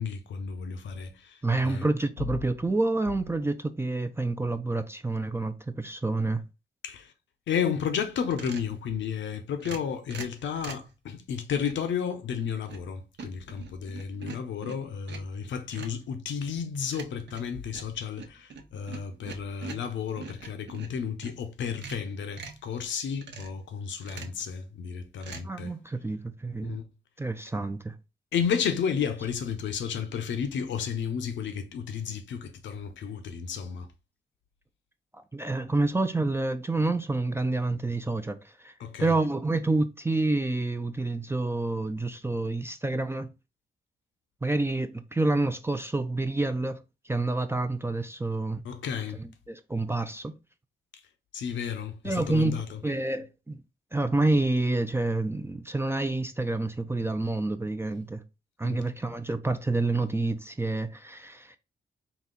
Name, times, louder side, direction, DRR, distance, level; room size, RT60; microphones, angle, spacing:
voice 1, 0.0-1.9 6.8-7.1 7.5-25.7 26.6-26.8 28.3-33.9 38.8-39.2 48.6-49.2 51.3-52.8 58.6-58.8, left 7 dB, 80° left, 0.8 m, -32 dB
voice 2, 1.4-6.4 25.4-26.8 27.2-27.9 35.1-38.7 39.0-43.3 44.4-48.6 49.2-50.3 52.0-53.6 53.9-58.2 58.6-61.6, right 2 dB, 15° right, 0.4 m, -28 dB
sound 1, 8.3-8.8 9.6-10.9 11.6-11.9 12.4-12.9 13.2-15.4 15.7-16.0 16.9-21.4 21.7-22.7 23.2-23.6 24.0-24.4 25.2-25.4, right 4 dB, 70° right, 0.9 m, -43 dB
4.0 x 2.4 x 3.8 m
cardioid pair, 60°, 19 cm